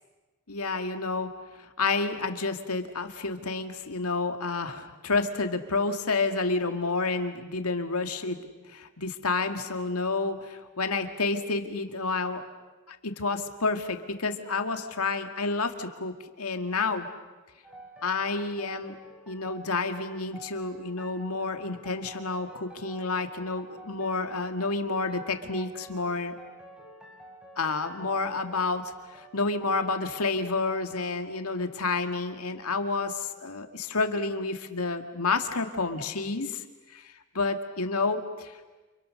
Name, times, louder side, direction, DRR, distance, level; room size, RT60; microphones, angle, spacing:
voice 1, 0.5-1.3 1.6-8.4 8.7-12.4 12.9-17.1 18.0-19.0 19.3-26.3 27.6-38.6, left 3 dB, 75° left, 6 dB, 2.2 m, -30 dB
sound 1, 17.6-31.0, right 2 dB, 5° right, 4.8 m, -50 dB
30.0 x 28.5 x 6.5 m, 1.2 s
head